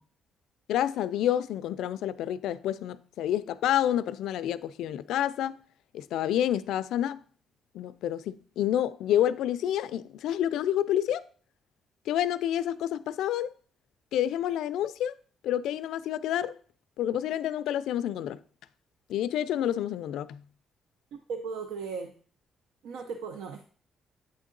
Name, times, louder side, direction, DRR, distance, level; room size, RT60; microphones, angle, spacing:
voice 1, 0.7-5.5 5.9-7.2 7.7-11.2 12.1-13.5 14.1-15.1 15.4-16.5 17.0-18.4 19.1-20.4, left 11 dB, 85° left, 0.3 m, -28 dB
voice 2, 21.3-22.1 22.8-23.6, right 5 dB, 90° right, 0.5 m, -36 dB
8.4 x 3.6 x 3.8 m
cardioid pair, 90°, 0 cm